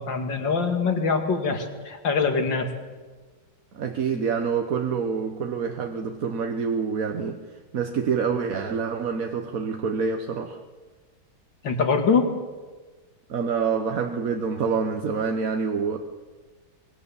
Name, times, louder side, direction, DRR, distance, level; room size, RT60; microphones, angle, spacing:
voice 1, 0.0-2.7 11.6-12.3, left 5 dB, 65° left, 5 dB, 3.0 m, -23 dB
voice 2, 3.7-10.6 13.3-16.0, right 5 dB, 50° right, 5 dB, 1.4 m, -27 dB
24.5 x 21.0 x 7.1 m, 1.4 s
omnidirectional pair, 2.2 m